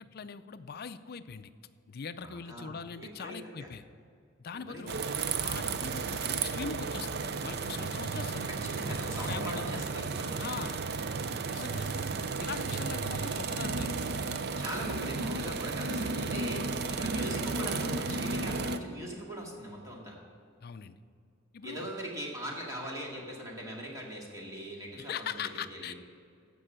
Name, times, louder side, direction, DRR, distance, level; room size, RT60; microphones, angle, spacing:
voice 1, 0.0-1.5 1.9-3.8 4.4-4.9 5.4-8.5 8.9-10.0 10.4-10.8 11.5-11.9 12.4-14.0 20.6-21.0 21.5-21.9 25.0-25.9, left 6 dB, 50° left, 12 dB, 0.5 m, -41 dB
voice 2, 2.2-3.7 4.7-5.0 8.5-10.5 13.1-13.5 14.6-20.2 21.6-25.4 25.7-25.9, equal, 15° right, -2 dB, 2.1 m, -41 dB
sound 1, 4.9-18.8, right 4 dB, 55° right, 0.5 m, -33 dB
14.5 x 5.4 x 7.4 m, 2.4 s
head